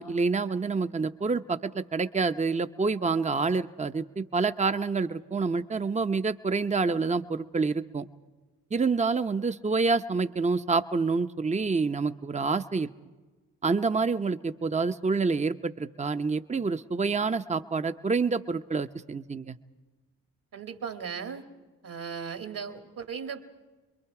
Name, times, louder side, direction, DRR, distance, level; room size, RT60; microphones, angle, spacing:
voice 1, 0.0-8.0 8.7-12.9 13.6-19.6, right 4 dB, 20° right, 10 dB, 0.7 m, -27 dB
voice 2, 20.5-21.5 21.8-23.4, right 6 dB, 60° right, 6 dB, 2.1 m, -37 dB
30.0 x 22.5 x 4.8 m, 1.3 s
supercardioid pair, 45°, 38 cm